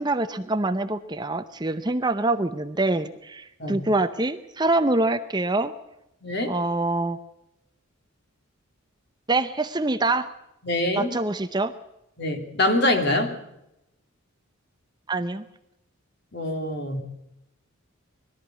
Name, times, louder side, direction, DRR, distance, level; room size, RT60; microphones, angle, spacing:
voice 1, 0.0-5.7 6.5-7.2 9.3-10.3 10.9-11.7 15.1-15.4, right 2 dB, 20° right, 10 dB, 0.7 m, -25 dB
voice 2, 6.2-6.5 10.6-11.1 12.2-13.3 16.3-17.0, left 1 dB, 50° left, 5 dB, 3.2 m, -24 dB
21.5 x 13.0 x 9.4 m, 0.86 s
head